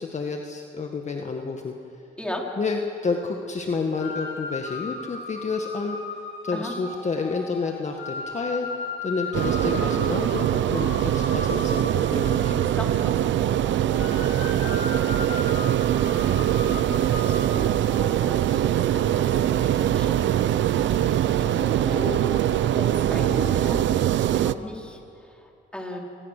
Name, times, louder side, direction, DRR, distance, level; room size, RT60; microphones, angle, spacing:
voice 1, 0.0-1.7 2.6-6.0 6.4-8.7 9.0-12.5, left 4 dB, 35° left, 3 dB, 1.7 m, -29 dB
sound 1, 4.0-23.7, left 3 dB, 80° left, 6.9 m, -37 dB
sound 2, 9.3-24.5, right 11 dB, 70° right, 0.7 m, -23 dB
voice 2, 12.4-14.5 15.5-20.1 20.4-20.8 21.4-22.5 22.7-26.0, left 1 dB, 5° left, -1 dB, 4.5 m, -37 dB
28.0 x 19.5 x 6.7 m, 2.6 s
cardioid pair, 90°, 20 cm